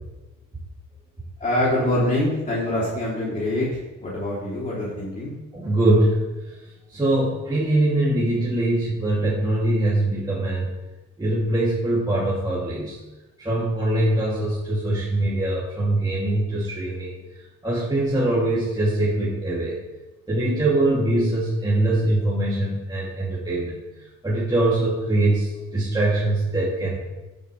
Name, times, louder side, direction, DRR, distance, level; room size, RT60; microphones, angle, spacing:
voice 1, 1.4-5.3, left 1 dB, 25° left, -8 dB, 3.3 m, -24 dB
voice 2, 5.5-6.5 6.9-10.7 11.2-13.0 13.4-17.2 17.6-19.8 20.3-23.8 24.2-27.0, right 1 dB, 15° right, -8 dB, 2.8 m, -22 dB
10.5 x 7.9 x 3.4 m, 1.1 s
cardioid pair, 90°, 30 cm